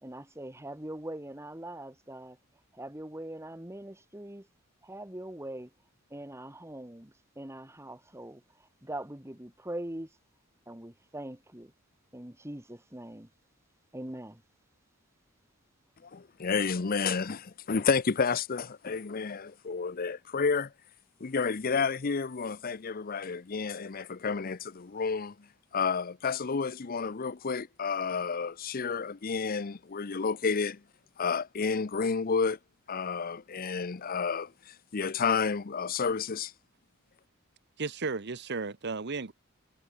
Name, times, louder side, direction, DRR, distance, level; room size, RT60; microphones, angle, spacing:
voice 1, 0.0-2.4 2.7-4.5 4.8-5.7 6.1-10.1 10.7-11.7 12.1-13.3 13.9-14.4, right 1 dB, 15° right, 2.1 m, -42 dB
voice 2, 16.0-20.7 21.2-25.3 25.7-30.8 31.2-32.6 32.9-36.5, left 5 dB, 45° left, 0.7 m, -30 dB
voice 3, 37.8-39.3, right 4 dB, 55° right, 1.0 m, -34 dB
head